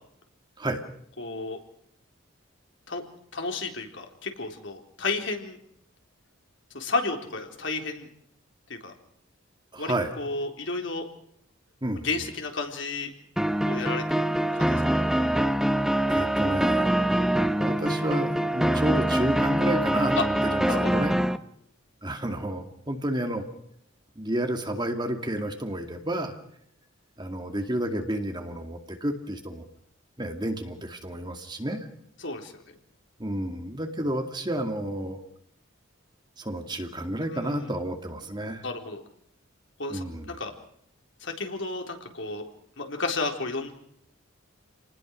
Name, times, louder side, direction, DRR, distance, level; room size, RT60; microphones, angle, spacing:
voice 1, 1.2-1.6 2.9-3.0 3.3-5.6 6.7-8.1 8.7-8.9 9.8-11.1 12.0-13.1 13.6-14.2 14.5-14.9 15.1-15.4 20.2-20.3 20.7-21.0 32.2-32.5 37.2-37.7 38.6-39.0 39.8-40.5 41.2-42.4 42.8-43.7, left 3 dB, 65° left, 3 dB, 4.0 m, -32 dB
voice 2, 9.7-10.1 11.8-12.1 16.1-16.9 17.5-21.2 22.0-23.4 24.2-26.3 27.2-29.6 30.2-31.9 33.2-35.2 36.4-38.6 39.9-40.3, right 1 dB, 20° right, 5 dB, 2.4 m, -30 dB
sound 1, 13.4-21.4, right 1 dB, ahead, 0.9 m, -24 dB
29.0 x 20.0 x 6.5 m, 0.69 s
head